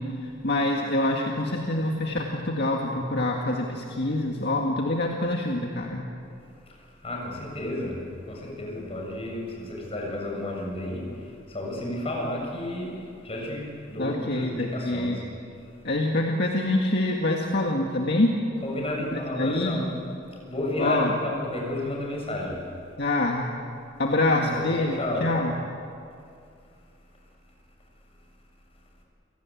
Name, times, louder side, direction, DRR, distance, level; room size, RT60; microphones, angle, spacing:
voice 1, 0.0-6.0 14.0-15.2 15.8-18.3 19.1-19.8 20.8-21.1 23.0-23.5 24.0-25.5, left 2 dB, 55° left, 0 dB, 1.9 m, -26 dB
voice 2, 7.0-8.0 8.3-15.2 18.6-20.0 20.5-22.6 24.2-25.3, left 1 dB, 30° left, -1 dB, 7.1 m, -32 dB
29.5 x 17.5 x 8.6 m, 2.5 s
head